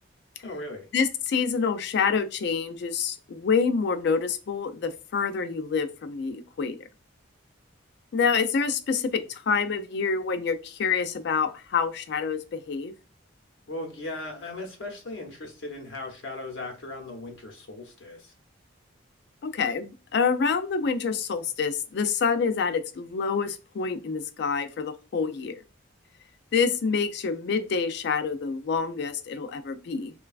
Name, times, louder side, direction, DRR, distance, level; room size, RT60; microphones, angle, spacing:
voice 1, 0.4-0.9 13.7-18.3, left 2 dB, 75° left, 0.7 m, -38 dB
voice 2, 0.9-6.8 8.1-12.9 19.4-25.6 26.5-30.1, left 5 dB, 55° left, 0.3 m, -27 dB
3.1 x 2.2 x 2.3 m
head